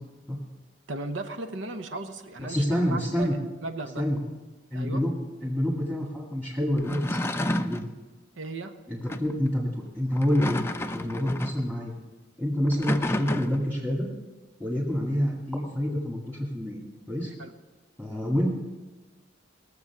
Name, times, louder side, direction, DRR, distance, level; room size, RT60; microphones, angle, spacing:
voice 1, 0.9-4.0 4.7-5.0 8.4-8.8 17.4-17.5, right 2 dB, 85° right, 8 dB, 1.0 m, -36 dB
voice 2, 2.4-3.4 4.0-4.2 4.7-5.1 5.4-7.9 8.9-10.6 10.9-11.9 12.4-14.1 14.6-16.8 17.1-17.3 18.0-18.5, equal, 10° right, -5 dB, 1.9 m, -27 dB
sound 1, 6.8-7.9 9.1-9.3 10.1-11.7 12.7-13.7, left 1 dB, 15° left, 0.4 m, -31 dB
20.0 x 7.4 x 5.9 m, 1.2 s
head